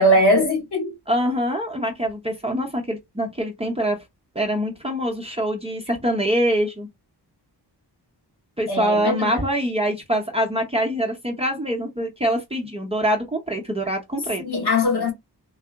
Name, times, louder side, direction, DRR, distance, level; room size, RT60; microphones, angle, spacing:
voice 1, 0.0-0.9 8.7-9.4 14.4-15.1, left 1 dB, 70° left, 2.6 m, -20 dB
voice 2, 1.1-4.0 4.3-6.9 8.6-14.4, equal, 15° right, 0.7 m, -24 dB
3.7 x 2.0 x 3.4 m
wide cardioid pair, 180°, 41 cm